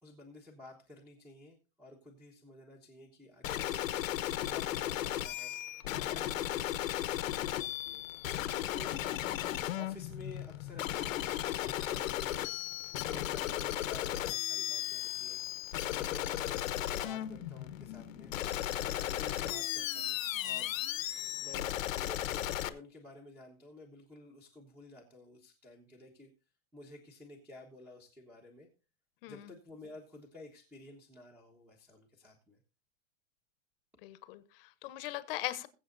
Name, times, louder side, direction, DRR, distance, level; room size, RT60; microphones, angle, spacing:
voice 1, 0.0-3.8 4.3-8.1 8.7-9.0 9.7-12.5 13.0-15.4 15.9-18.3 18.9-20.8 21.4-26.3 26.7-28.7 29.3-32.6, left 2 dB, 5° right, 2 dB, 1.3 m, -53 dB
sound 1, 3.4-22.7, left 13 dB, 80° left, 1.2 m, -35 dB
voice 2, 34.0-35.7, left 16 dB, 45° left, 14 dB, 1.1 m, -40 dB
21.5 x 7.9 x 2.6 m, 0.32 s
supercardioid pair, 160°, 39 cm